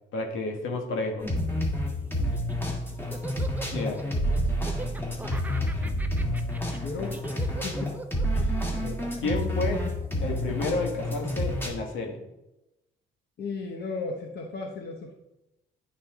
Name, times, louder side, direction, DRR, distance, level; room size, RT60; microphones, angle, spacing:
voice 1, 0.1-1.3 3.7-4.0 8.3-9.8 10.2-12.2, left 2 dB, 80° left, 2 dB, 1.5 m, -31 dB
sound 1, 1.2-11.7, equal, 10° left, 1.8 m, -29 dB
Laughter, 2.2-10.6, right 3 dB, 10° right, 0.6 m, -42 dB
voice 2, 6.8-8.0 13.4-15.1, left 4 dB, 55° left, 2 dB, 1.0 m, -35 dB
9.8 x 4.3 x 3.7 m, 0.93 s
cardioid pair, 90°, 20 cm